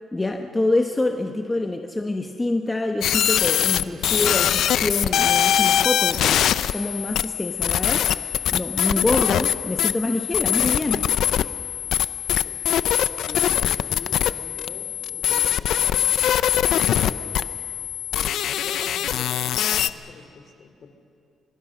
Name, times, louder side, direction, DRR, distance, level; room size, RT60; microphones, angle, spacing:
voice 1, 0.1-6.4 6.7-8.1 8.5-11.0, left 2 dB, 15° left, 3 dB, 1.1 m, -26 dB
voice 2, 1.3-1.6 10.6-10.9 12.3-12.6 13.2-17.5 18.1-20.9, left 4 dB, 55° left, 6 dB, 3.0 m, -44 dB
sound 1, 3.0-19.9, left 10 dB, 80° left, 0.6 m, -22 dB
26.0 x 22.5 x 6.4 m, 2.6 s
cardioid pair, 110°, 0 cm